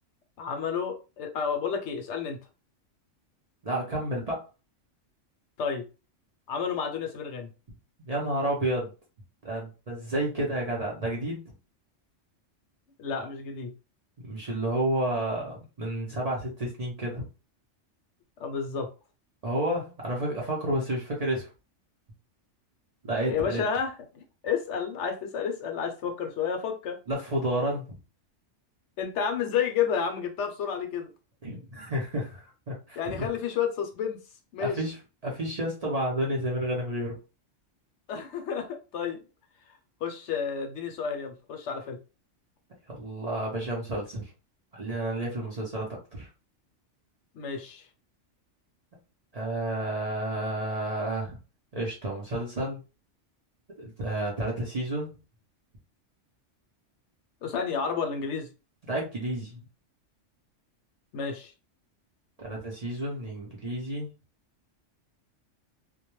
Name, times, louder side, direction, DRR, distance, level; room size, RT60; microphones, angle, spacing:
voice 1, 0.4-2.4 5.6-5.9 6.5-7.5 13.0-13.7 18.4-18.9 23.3-27.0 29.0-31.1 33.0-34.2 34.5-34.8 38.1-39.2 39.7-42.0 47.3-47.9 57.4-58.5 61.1-61.5, left 7 dB, 70° left, 0.9 m, -31 dB
voice 2, 3.6-4.4 8.0-8.9 9.4-11.4 14.2-17.2 19.4-21.5 23.0-23.6 27.1-27.8 31.4-33.3 34.6-35.0 35.2-37.2 42.9-44.3 44.7-46.3 49.3-51.4 51.7-52.8 53.8-55.1 58.8-59.6 62.4-64.1, right 1 dB, 45° right, 0.5 m, -30 dB
2.2 x 2.2 x 2.9 m
omnidirectional pair, 1.3 m